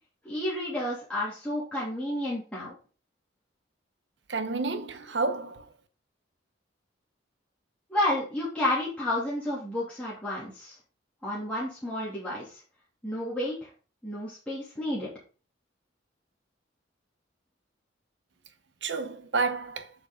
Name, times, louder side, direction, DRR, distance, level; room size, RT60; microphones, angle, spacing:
voice 1, 0.2-2.7 7.9-10.7 11.2-12.6 13.0-13.5 14.0-15.1, left 1 dB, 5° left, 2.9 m, -31 dB
voice 2, 4.3-5.6 18.8-19.9, right 4 dB, 65° right, 1.0 m, -30 dB
7.8 x 6.2 x 3.8 m
head